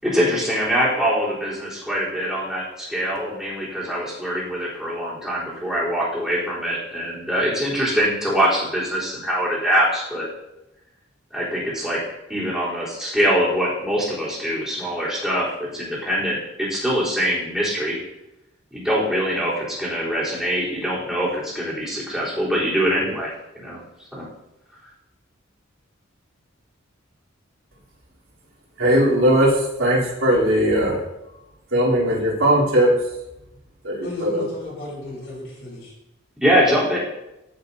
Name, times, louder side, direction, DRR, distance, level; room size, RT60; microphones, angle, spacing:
voice 1, 0.0-10.3 11.3-12.0 12.3-18.0 18.7-23.8 24.1-24.2 36.4-37.0, equal, 5° right, -9 dB, 3.8 m, -23 dB
voice 2, 28.8-31.0 31.7-32.9 33.8-34.4, equal, 90° right, -5 dB, 3.5 m, -18 dB
voice 3, 34.0-35.9 36.8-37.0, left 1 dB, 75° left, -7 dB, 3.8 m, -34 dB
14.5 x 6.5 x 2.8 m, 0.93 s
head